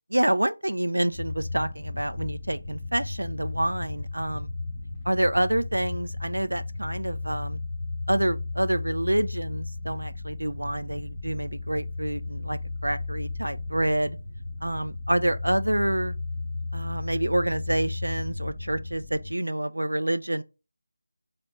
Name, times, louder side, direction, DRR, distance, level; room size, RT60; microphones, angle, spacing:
voice 1, 0.1-4.5 5.1-7.6 8.1-14.2 14.6-16.1 16.7-20.4, right 1 dB, 75° right, 0.4 m, -27 dB
sound 1, 1.1-19.3, left 3 dB, 15° left, 0.8 m, -34 dB
3.9 x 2.1 x 4.3 m
figure-of-eight pair, 165°, 0 cm